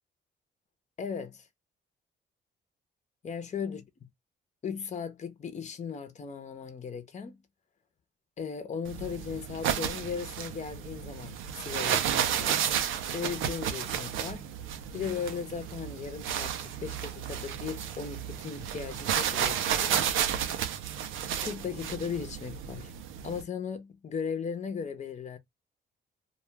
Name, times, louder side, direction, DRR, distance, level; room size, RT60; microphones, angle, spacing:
voice 1, 1.0-1.5 3.2-3.8 4.6-7.4 8.4-12.7 13.1-14.5 14.9-20.1 21.4-22.9 23.2-25.4, left 6 dB, 35° left, 0.8 m, -37 dB
sound 1, 8.9-23.4, right 9 dB, 85° right, 0.6 m, -32 dB
2.4 x 2.4 x 3.2 m
cardioid pair, 90°, 20 cm